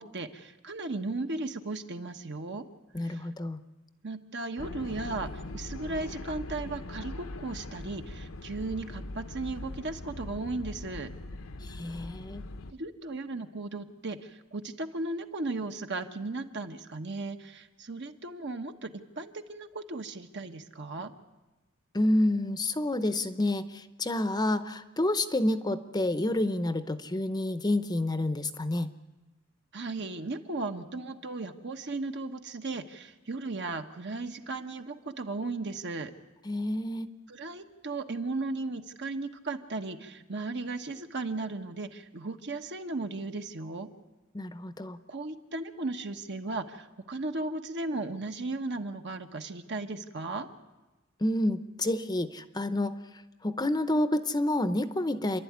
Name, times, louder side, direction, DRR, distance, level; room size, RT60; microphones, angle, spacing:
voice 1, 0.0-2.6 3.0-3.3 4.0-11.1 12.7-18.9 19.2-21.1 29.7-36.1 37.3-43.9 45.1-50.5, right 3 dB, 55° right, 6 dB, 1.2 m, -36 dB
voice 2, 2.9-3.6 11.6-12.4 21.9-28.9 36.4-37.1 44.3-45.0 51.2-52.9 53.4-55.4, left 1 dB, 20° left, 11 dB, 0.7 m, -29 dB
sound 1, 4.6-12.7, left 2 dB, 70° left, 0.9 m, -41 dB
28.5 x 12.0 x 9.5 m, 1.1 s
head